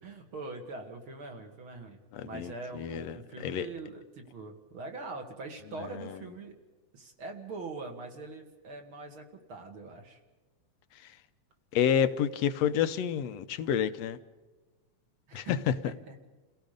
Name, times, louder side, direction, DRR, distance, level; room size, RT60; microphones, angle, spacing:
voice 1, 0.0-6.5 6.9-10.2 15.3-16.2, right 3 dB, 45° right, 2.9 m, -43 dB
voice 2, 2.1-3.7 11.7-14.2 15.3-15.7, left 9 dB, 70° left, 1.8 m, -29 dB
30.0 x 17.0 x 5.2 m
omnidirectional pair, 3.3 m